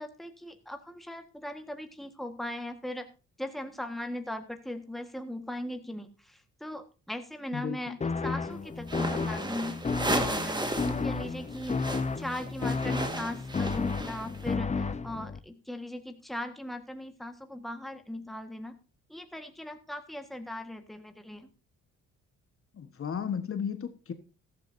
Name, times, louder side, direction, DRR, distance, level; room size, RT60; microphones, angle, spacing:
voice 1, 0.0-3.1 3.4-8.0 8.2-9.8 10.1-18.8 19.1-21.5, left 1 dB, ahead, 6 dB, 1.6 m, -39 dB
voice 2, 7.5-8.0 22.7-24.1, left 7 dB, 45° left, 8 dB, 1.4 m, -34 dB
sound 1, 8.0-15.4, left 4 dB, 25° left, 0.9 m, -32 dB
sound 2, 8.8-11.0 11.3-14.4, right 2 dB, 15° right, 1.8 m, -34 dB
14.5 x 13.0 x 2.7 m, 0.33 s
cardioid pair, 90°, 30 cm